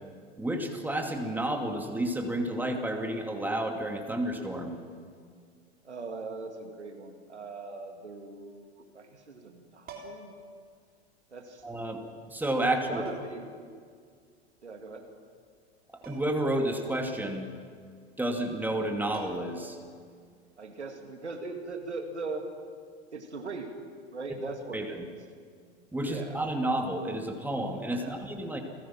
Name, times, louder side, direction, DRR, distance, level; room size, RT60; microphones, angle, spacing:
voice 1, 0.4-4.8 11.6-12.0 12.3-13.0 16.1-17.5 18.2-19.8 24.7-25.1 25.9-28.6, right 1 dB, 5° right, 3 dB, 2.5 m, -30 dB
voice 2, 5.8-10.3 11.3-11.6 12.9-13.6 14.6-15.1 20.6-22.5 23.1-23.8 24.1-25.0 26.0-26.4 28.0-28.3, right 3 dB, 80° right, 4 dB, 2.5 m, -40 dB
sound 1, 9.8-10.4 11.8-11.9 13.0-13.5 16.0-16.5 16.8-16.9 18.7-18.8 19.1-19.7 21.7-21.9, right 2 dB, 25° right, 3.4 m, -47 dB
29.0 x 16.0 x 6.1 m, 2.1 s
figure-of-eight pair, 85°, 33 cm